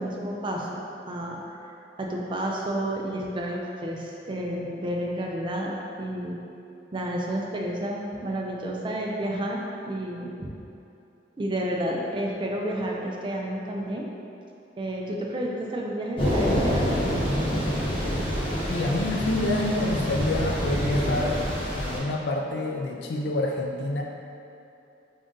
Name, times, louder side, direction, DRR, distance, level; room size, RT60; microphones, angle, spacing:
voice 1, 0.0-6.4 6.9-10.5 11.4-14.0 14.8-17.0 17.5-17.8, right 1 dB, 25° right, -1 dB, 0.4 m, -31 dB
Thunder / Rain, 16.2-22.0, equal, 30° left, 1.0 m, -27 dB
voice 2, 18.7-21.4 21.7-24.0, left 2 dB, 60° left, 0 dB, 0.3 m, -27 dB
3.5 x 2.6 x 3.7 m, 2.7 s
head